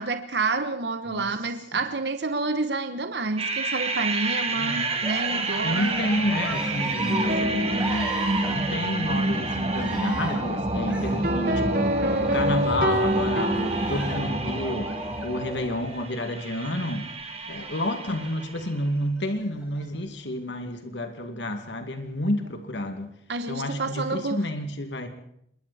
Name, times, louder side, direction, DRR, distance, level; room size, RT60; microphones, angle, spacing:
voice 1, 0.0-6.0 23.3-24.4, right 3 dB, 70° right, 1.1 m, -29 dB
sound 1, 3.4-18.7, right 2 dB, 35° right, 2.6 m, -29 dB
voice 2, 4.5-4.9 5.6-8.1 8.5-11.9 12.2-17.1 17.5-23.1 23.5-25.1, left 1 dB, 85° left, 2.4 m, -30 dB
Cheering, 4.6-16.3 17.6-18.5 19.2-19.8, right 1 dB, 5° right, 5.6 m, -37 dB
sound 2, 7.1-8.7 11.2-14.5, equal, 50° right, 1.5 m, -27 dB
27.0 x 22.5 x 4.3 m
head